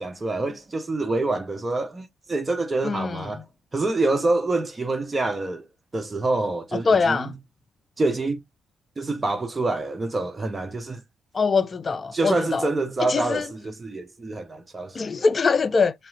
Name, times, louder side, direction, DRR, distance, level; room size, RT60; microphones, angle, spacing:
voice 1, 0.0-3.4 3.7-5.7 5.9-7.3 8.0-8.4 9.0-11.0 12.1-15.3, right 2 dB, 25° right, 0.9 m, -26 dB
voice 2, 2.8-3.2 6.7-7.3 11.3-12.7 13.1-13.5 14.9-15.9, left 4 dB, 35° left, 0.4 m, -23 dB
4.5 x 3.0 x 2.7 m
cardioid pair, 90°, 0 cm